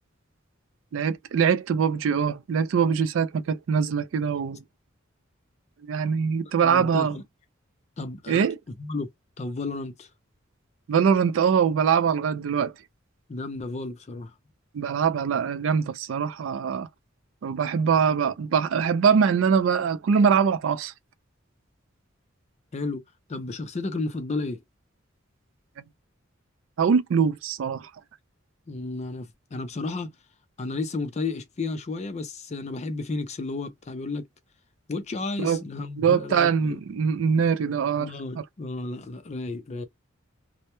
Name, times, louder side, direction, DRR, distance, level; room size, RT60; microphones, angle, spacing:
voice 1, 0.9-4.6 5.8-7.2 8.3-8.6 10.9-12.7 14.7-16.9 17.4-20.9 26.8-27.9 35.4-35.6 36.0-38.1 38.4-38.5, right 6 dB, 70° right, 0.3 m, -23 dB
voice 2, 6.6-7.2 8.0-8.5 8.8-9.1 9.4-10.1 13.3-14.3 22.7-23.0 23.3-24.6 28.7-30.1 30.6-34.3 34.9-36.8 38.0-39.8, left 3 dB, 35° left, 0.4 m, -32 dB
2.2 x 2.0 x 2.9 m
head